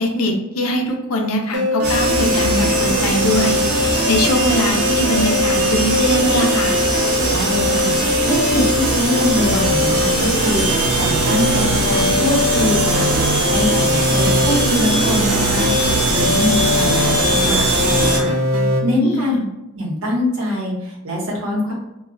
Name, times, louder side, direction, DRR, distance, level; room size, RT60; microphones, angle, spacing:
voice 1, 0.0-6.8 19.0-19.4, left 1 dB, 75° left, 2 dB, 0.5 m, -21 dB
sound 1, 1.5-18.8, equal, 90° right, 0.5 m, -21 dB
sound 2, 1.8-18.2, right 1 dB, 45° right, 1.1 m, -20 dB
voice 2, 7.3-13.1 13.5-15.7 16.1-18.4 18.8-19.4 19.7-21.7, left 1 dB, 65° right, -3 dB, 1.0 m, -23 dB
2.3 x 2.1 x 3.6 m, 0.93 s
head